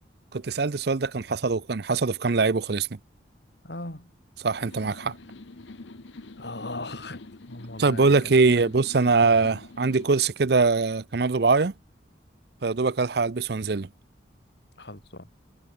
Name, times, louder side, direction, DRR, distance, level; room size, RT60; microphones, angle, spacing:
voice 1, 0.3-2.9 4.4-5.1 7.8-11.7 12.6-13.9, right 4 dB, 55° right, 0.6 m, -22 dB
voice 2, 3.6-4.1 6.4-8.3 14.8-15.3, left 2 dB, 60° left, 3.7 m, -38 dB
sound 1, 4.6-10.1, left 2 dB, 75° left, 1.0 m, -45 dB
head